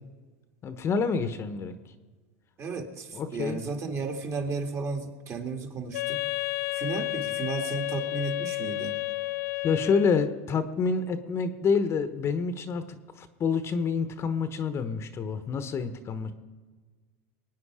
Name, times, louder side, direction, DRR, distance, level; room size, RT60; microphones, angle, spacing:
voice 1, 0.6-1.7 3.1-3.6 9.6-12.8 13.2-16.3, left 5 dB, 30° left, 10 dB, 1.0 m, -27 dB
voice 2, 2.6-6.2 6.7-9.0, right 4 dB, 30° right, 4 dB, 1.9 m, -34 dB
Wind instrument woodwind instrument, 5.9-10.4, left 18 dB, 80° left, 0.5 m, -31 dB
22.0 x 9.5 x 4.9 m, 1.4 s
supercardioid pair, 115°, 8 cm